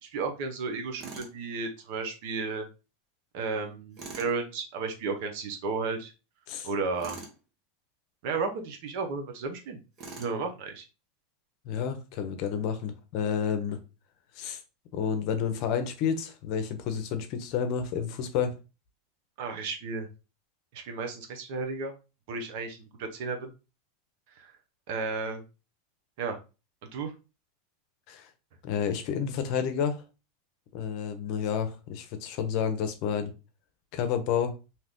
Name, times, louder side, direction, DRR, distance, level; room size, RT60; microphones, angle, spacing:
voice 1, 0.0-2.7 3.3-6.1 6.6-7.2 8.2-9.8 10.2-10.8 19.4-20.1 20.7-21.9 22.3-23.5 24.3-24.5 24.9-25.4 26.2-26.4 26.9-27.1, right 4 dB, 65° right, 4 dB, 0.8 m, -33 dB
Tools, 1.0-1.4 4.0-4.3 7.0-7.4 10.0-10.4, right 3 dB, 40° right, 1.0 m, -42 dB
voice 2, 11.6-13.8 14.4-14.6 14.9-18.6 28.1-28.3 28.6-30.0 30.7-33.3 33.9-34.5, left 7 dB, 55° left, 8 dB, 0.7 m, -30 dB
2.8 x 2.4 x 3.5 m, 0.30 s
hypercardioid pair, 115°, 0 cm